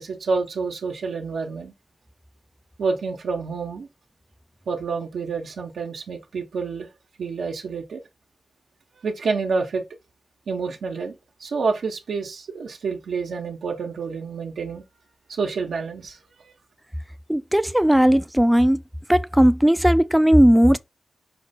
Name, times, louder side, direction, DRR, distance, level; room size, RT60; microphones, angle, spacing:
voice 1, 0.0-1.7 2.8-3.9 4.7-6.9 7.2-8.0 9.0-9.8 10.5-14.8 15.3-16.2 16.4-16.5, right 4 dB, 85° right, 0.9 m, -28 dB
voice 2, 17.3-18.8 19.1-20.8, equal, 5° right, 0.4 m, -17 dB
5.8 x 2.2 x 4.1 m
cardioid pair, 75°, 0 cm